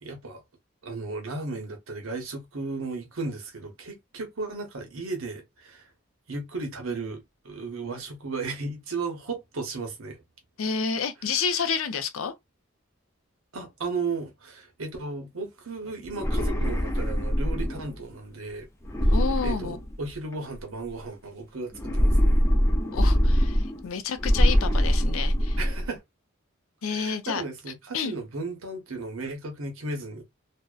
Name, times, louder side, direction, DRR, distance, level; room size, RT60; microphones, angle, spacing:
voice 1, 0.0-0.4 0.8-5.8 6.3-10.2 13.5-18.7 19.0-19.1 19.4-22.4 25.6-26.0 26.9-30.2, right 3 dB, 85° right, 0.8 m, -35 dB
voice 2, 10.6-12.3 19.1-19.8 22.9-25.6 26.8-27.4 27.9-28.1, left 6 dB, 75° left, 0.5 m, -29 dB
sound 1, 16.0-18.0 18.8-20.3 21.7-23.9 24.2-25.9, equal, 15° left, 0.4 m, -23 dB
2.6 x 2.1 x 2.3 m
head